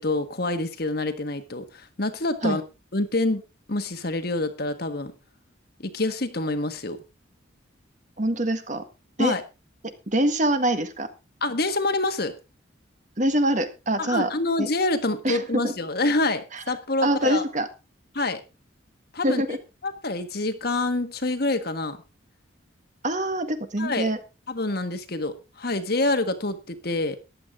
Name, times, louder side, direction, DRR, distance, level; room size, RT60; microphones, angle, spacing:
voice 1, 0.0-2.6 2.9-3.4 3.7-5.1 5.8-7.0 9.2-9.4 11.4-12.4 14.0-17.4 18.1-18.4 19.1-19.4 19.8-22.0 23.8-24.1 24.5-27.2, left 2 dB, 50° left, 1.5 m, -26 dB
voice 2, 8.2-8.8 9.2-9.3 10.1-11.1 13.2-14.3 14.6-14.7 15.2-15.7 16.5-16.6 17.0-17.7 19.2-19.6 23.0-24.2, right 1 dB, 40° right, 1.6 m, -24 dB
14.5 x 10.5 x 3.7 m
head